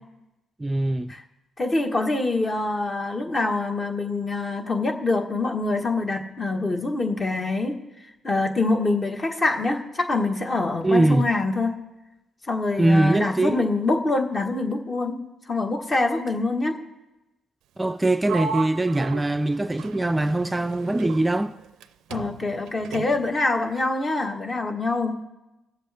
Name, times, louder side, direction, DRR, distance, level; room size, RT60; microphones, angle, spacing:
voice 1, 0.6-1.1 10.8-11.3 12.8-13.7 17.8-21.5, right 2 dB, 20° right, 0.4 m, -22 dB
voice 2, 1.6-7.8 8.2-11.7 12.5-15.2 15.5-16.7 22.1-25.1, left 2 dB, 35° left, 1.4 m, -25 dB
Sliding door, 18.3-21.9 22.1-23.4, right 6 dB, 80° right, 0.4 m, -36 dB
20.0 x 7.5 x 3.5 m
supercardioid pair, 55°, 0 cm